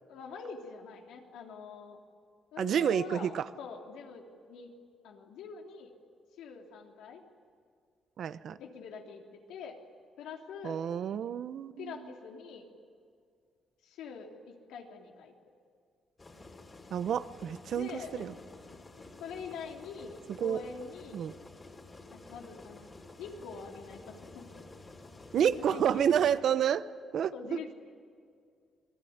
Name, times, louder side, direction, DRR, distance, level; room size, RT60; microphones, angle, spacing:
voice 1, 0.1-2.0 2.5-4.7 5.0-5.9 6.4-7.2 8.5-9.8 10.2-10.8 11.8-12.6 13.8-15.3 17.7-18.4 19.2-21.3 22.1-22.9 23.2-24.5 25.4-26.1 27.3-27.7, left 6 dB, 90° left, 1 dB, 3.3 m, -44 dB
voice 2, 2.6-3.4 8.2-8.6 10.6-11.9 16.9-18.3 20.4-20.6 21.1-21.3 25.3-26.8 27.1-27.7, right 9 dB, 65° right, 14 dB, 0.9 m, -29 dB
sound 1, 16.2-26.4, left 2 dB, 25° left, 3.3 m, -51 dB
27.0 x 20.5 x 9.6 m, 2.2 s
cardioid pair, 90°, 0 cm